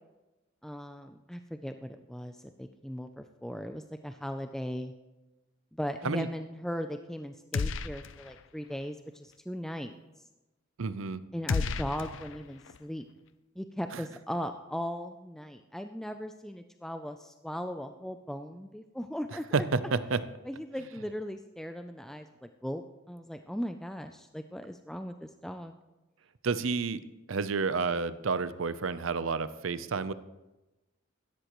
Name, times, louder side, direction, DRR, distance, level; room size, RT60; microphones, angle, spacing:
voice 1, 0.6-4.9 5.8-9.9 11.3-13.0 13.6-19.4 20.5-25.7, equal, ahead, 7 dB, 0.4 m, -38 dB
sound 1, 7.5-8.4 8.7-8.8 11.5-12.8, left 4 dB, 75° left, 0.5 m, -33 dB
voice 2, 10.8-11.2 13.9-14.0 19.5-20.2 26.4-27.0 27.3-30.1, right 4 dB, 85° right, 14 dB, 0.6 m, -30 dB
16.5 x 13.0 x 3.1 m, 1.0 s
head